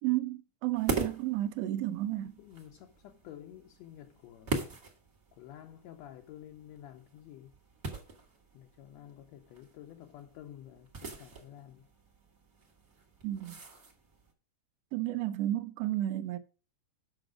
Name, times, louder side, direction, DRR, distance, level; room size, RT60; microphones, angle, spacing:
voice 1, 0.0-2.3 13.2-13.6 14.9-16.4, right 14 dB, 75° right, 1.6 m, -32 dB
sound 1, 0.7-14.3, right 4 dB, 40° right, 1.4 m, -42 dB
voice 2, 2.2-4.6 5.3-7.5 8.5-11.9, left 11 dB, 75° left, 1.8 m, -51 dB
7.8 x 5.8 x 4.9 m
omnidirectional pair, 3.5 m